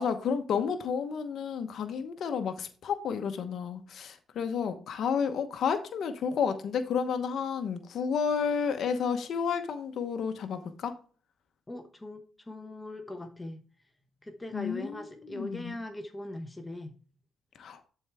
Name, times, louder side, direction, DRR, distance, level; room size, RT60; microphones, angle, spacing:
voice 1, 0.0-10.9 14.5-15.8 17.6-17.8, left 6 dB, 65° left, 8 dB, 0.9 m, -31 dB
voice 2, 11.7-13.6 14.2-17.0, left 1 dB, 15° left, 6 dB, 1.0 m, -40 dB
10.5 x 4.6 x 3.4 m, 0.40 s
cardioid pair, 90°, 0 cm